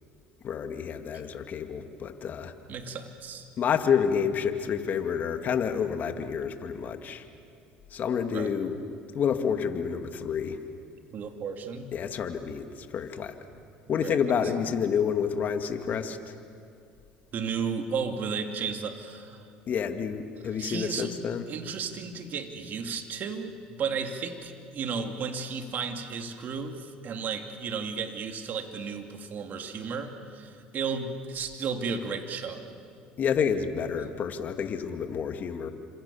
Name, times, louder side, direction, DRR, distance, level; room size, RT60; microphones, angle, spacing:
voice 1, 0.4-2.5 3.6-7.2 7.9-8.8 9.1-10.6 11.9-13.4 13.9-16.4 19.7-21.4 33.2-35.7, left 7 dB, 45° left, 7 dB, 2.2 m, -29 dB
voice 2, 2.7-3.5 8.3-8.5 11.1-11.9 14.0-14.2 17.3-19.5 20.6-21.1 21.5-32.7, right 5 dB, 50° right, 5 dB, 2.8 m, -34 dB
29.5 x 26.5 x 7.3 m, 2.5 s
hypercardioid pair, 80°, 4 cm